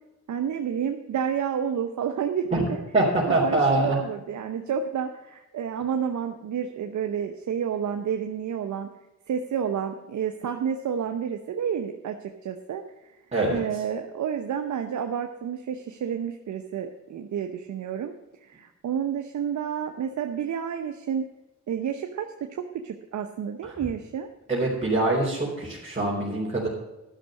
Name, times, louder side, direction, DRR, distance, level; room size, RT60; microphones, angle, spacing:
voice 1, 0.3-2.8 3.3-8.9 9.3-12.8 13.5-18.1 18.4-21.2 21.7-24.3, right 8 dB, 75° right, 6 dB, 0.9 m, -30 dB
voice 2, 2.9-4.0 13.3-13.6 23.6-23.7 24.5-26.7, right 2 dB, 25° right, -6 dB, 3.8 m, -24 dB
12.0 x 6.5 x 7.6 m, 1.0 s
cardioid pair, 65°, 29 cm